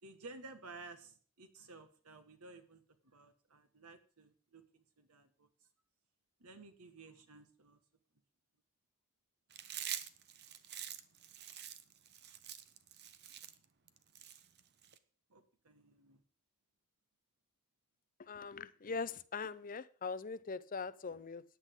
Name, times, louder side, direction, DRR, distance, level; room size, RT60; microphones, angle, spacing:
voice 1, 0.0-5.5 6.4-7.8 15.3-16.2, right 3 dB, 85° right, 9 dB, 1.7 m, -55 dB
Chewing mastication, 9.5-15.0, right 10 dB, 50° right, 0.9 m, -46 dB
voice 2, 18.3-21.4, left 4 dB, 40° left, 15 dB, 0.6 m, -41 dB
14.5 x 10.0 x 3.7 m, 0.42 s
head